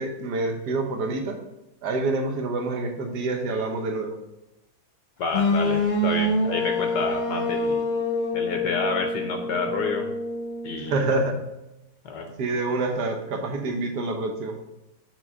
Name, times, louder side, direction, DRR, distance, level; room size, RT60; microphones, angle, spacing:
voice 1, 0.0-1.4 1.8-4.2 10.9-11.4 12.4-14.6, right 2 dB, 65° right, 4 dB, 1.4 m, -27 dB
voice 2, 5.2-7.9 8.3-10.1 10.6-11.2 12.0-12.3, left 4 dB, 70° left, 4 dB, 1.1 m, -29 dB
sound 1, 5.3-11.2, left 1 dB, 30° left, 1.0 m, -26 dB
6.1 x 3.8 x 6.1 m, 0.93 s
omnidirectional pair, 2.1 m